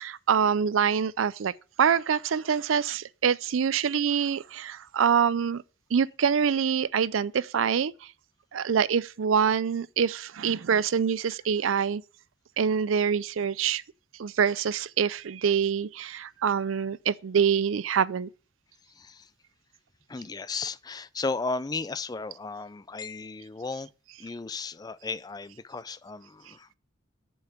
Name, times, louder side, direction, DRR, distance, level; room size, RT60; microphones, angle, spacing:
voice 1, 0.0-1.5 1.8-5.6 5.9-7.9 8.5-12.0 12.6-13.8 14.2-18.3, right 7 dB, 85° right, 0.5 m, -25 dB
voice 2, 19.0-19.3 20.1-23.9 24.2-26.7, left 4 dB, 20° left, 0.4 m, -35 dB
7.1 x 5.6 x 7.0 m
head